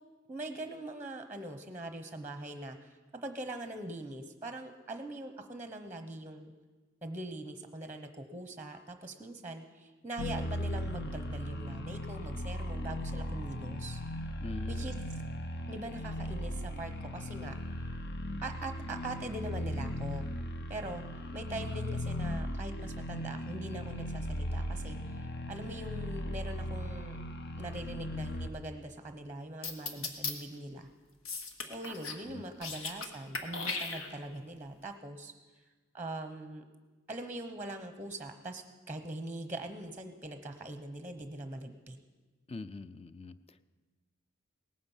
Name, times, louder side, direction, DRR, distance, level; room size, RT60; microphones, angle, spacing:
voice 1, 0.3-6.5 7.0-14.0 14.7-14.9 15.7-17.6 18.4-20.3 20.7-21.0 21.3-27.2 27.6-30.9 31.7-35.3 35.9-36.6 37.1-42.0, right 1 dB, 10° right, 8 dB, 0.9 m, -42 dB
sound 1, 10.2-28.5, equal, 55° left, 0.9 m, -37 dB
voice 2, 14.4-15.0 32.3-32.4 42.5-43.6, left 3 dB, 30° left, 13 dB, 0.5 m, -43 dB
sound 2, 29.6-30.3 31.3-32.2 32.5-33.1 33.3-34.4, left 4 dB, 75° left, 1.5 m, -36 dB
18.0 x 9.5 x 7.2 m, 1.3 s
head